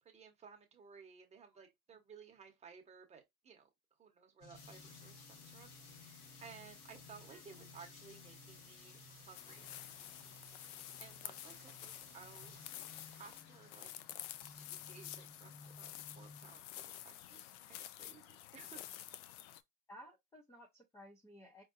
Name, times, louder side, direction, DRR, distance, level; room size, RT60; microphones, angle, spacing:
voice 1, 0.0-3.7 4.0-9.9 11.0-12.6 13.2-13.9 14.6-18.8, right 6 dB, 15° right, 0.9 m, -58 dB
sound 1, 4.4-16.6, left 3 dB, 35° left, 1.2 m, -59 dB
sound 2, 4.5-13.4, left 4 dB, 90° left, 1.4 m, -59 dB
sound 3, 9.3-19.6, left 12 dB, 55° left, 0.5 m, -50 dB
voice 2, 19.9-21.6, equal, 5° left, 0.4 m, -56 dB
4.3 x 2.7 x 2.4 m
hypercardioid pair, 120°, 44 cm